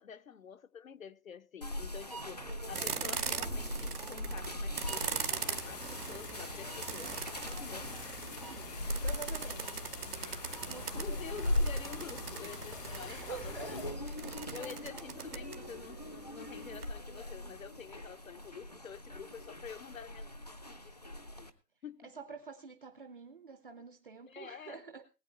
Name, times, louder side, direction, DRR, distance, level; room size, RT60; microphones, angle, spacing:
voice 1, 0.0-8.1 10.9-14.0 14.5-20.9 21.3-21.5 21.8-22.1 23.8-23.9 24.2-24.8, left 7 dB, 60° left, 0.8 m, -48 dB
sound 1, 1.6-21.5, left 1 dB, 25° left, 0.5 m, -40 dB
sound 2, 2.4-16.8, right 6 dB, 70° right, 1.5 m, -42 dB
sound 3, 4.8-13.9, left 6 dB, 80° left, 1.3 m, -48 dB
voice 2, 9.0-9.9 10.7-11.2 13.0-13.9 22.0-25.1, right 5 dB, 35° right, 0.7 m, -47 dB
20.0 x 8.6 x 4.1 m
hypercardioid pair, 160°, 47 cm